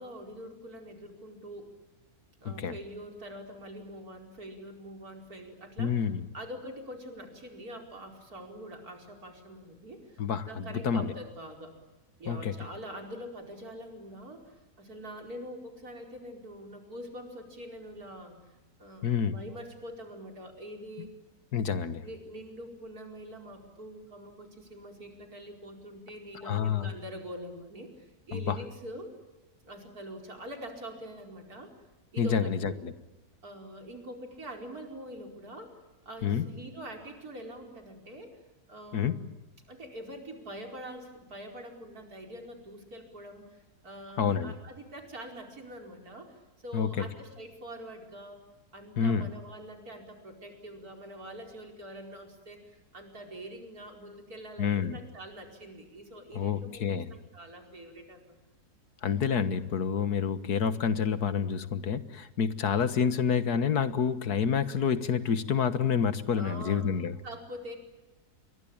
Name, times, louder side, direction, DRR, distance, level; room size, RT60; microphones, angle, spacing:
voice 1, 0.0-1.7 2.4-6.1 6.3-11.7 12.2-21.1 22.0-29.1 29.6-31.7 32.1-32.8 33.4-35.8 36.1-38.4 38.7-39.3 39.7-48.4 48.7-58.4 66.3-66.9 67.2-67.8, equal, 65° right, 3 dB, 5.3 m, -44 dB
voice 2, 5.8-6.2 10.2-11.1 12.3-12.5 19.0-19.3 21.5-22.0 26.4-26.9 28.3-28.6 32.2-32.9 36.2-36.4 38.9-39.2 44.2-44.5 46.7-47.1 49.0-49.3 54.6-55.0 56.4-57.1 59.0-67.2, left 7 dB, 75° left, 13 dB, 1.9 m, -28 dB
29.0 x 23.0 x 8.8 m, 1.1 s
omnidirectional pair, 1.7 m